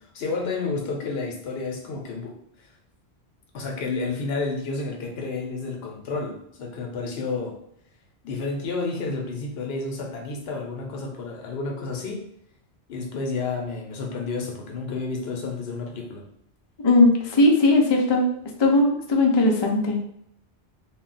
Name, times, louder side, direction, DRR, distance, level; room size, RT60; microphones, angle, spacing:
voice 1, 0.1-2.7 3.5-7.6 8.2-12.3 12.9-16.2, left 3 dB, 75° left, 1 dB, 0.9 m, -30 dB
voice 2, 16.8-18.2 18.6-20.0, left 2 dB, 45° left, 1 dB, 0.4 m, -18 dB
2.3 x 2.1 x 3.8 m, 0.74 s
omnidirectional pair, 1.1 m